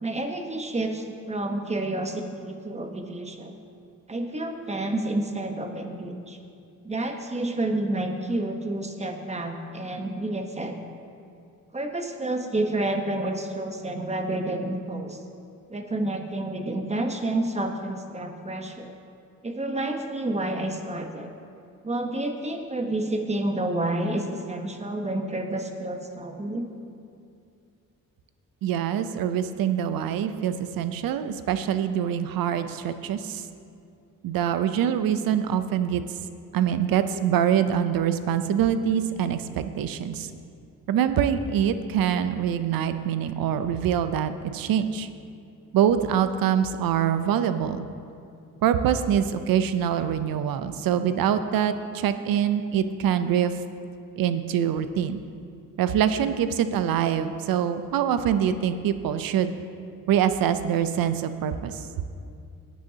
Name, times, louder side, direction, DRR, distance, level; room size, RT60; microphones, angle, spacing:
voice 1, 0.0-3.5 4.1-6.4 6.8-10.8 11.7-15.2 15.7-18.9 19.4-21.3 21.8-26.7, right 1 dB, 20° right, 4 dB, 1.1 m, -29 dB
voice 2, 28.6-33.4 34.2-36.0 36.5-40.3 40.9-45.1 45.7-47.9 48.6-53.5 54.2-55.2 55.8-59.5 60.1-61.8, right 9 dB, 80° right, 10 dB, 0.7 m, -24 dB
17.5 x 9.3 x 2.8 m, 2.5 s
cardioid pair, 90°, 34 cm